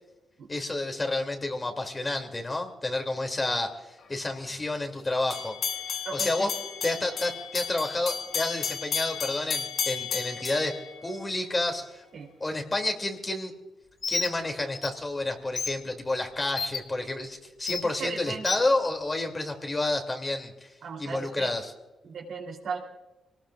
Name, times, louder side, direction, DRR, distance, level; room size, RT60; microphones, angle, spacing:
voice 1, 0.5-5.5 6.1-6.5 6.8-12.0 12.4-13.5 14.1-20.5 21.0-21.7, left 2 dB, 30° left, 3 dB, 2.9 m, -30 dB
sound 1, 5.3-11.5, left 6 dB, 75° left, 1.7 m, -33 dB
voice 2, 6.1-6.5 12.1-12.3 17.8-18.6 20.8-21.5 22.0-22.8, right 5 dB, 70° right, 0 dB, 3.4 m, -36 dB
Bird, 14.0-14.3 14.7-14.9 15.6-15.7 16.6-16.8 17.7-17.8 18.4-18.6, left 4 dB, 55° left, 1.4 m, -29 dB
24.0 x 19.0 x 2.5 m, 1.0 s
supercardioid pair, 55°, 0 cm